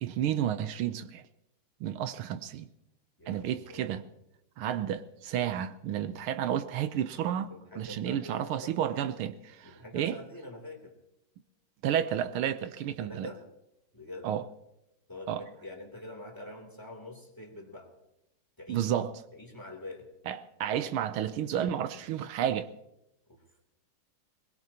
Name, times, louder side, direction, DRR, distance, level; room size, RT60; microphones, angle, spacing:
voice 1, 0.0-1.2 1.8-2.7 3.3-4.0 4.6-10.2 11.8-13.3 14.2-14.4 15.3-15.5 18.7-19.1 20.3-22.7, right 10 dB, 85° right, 1.6 m, -31 dB
voice 2, 3.2-3.9 7.5-8.8 9.6-10.9 12.9-13.4 13.9-14.3 15.1-17.9 18.6-18.9 19.3-20.1 23.3-23.4, left 2 dB, 10° left, 3.0 m, -45 dB
22.5 x 20.5 x 2.9 m
omnidirectional pair, 2.3 m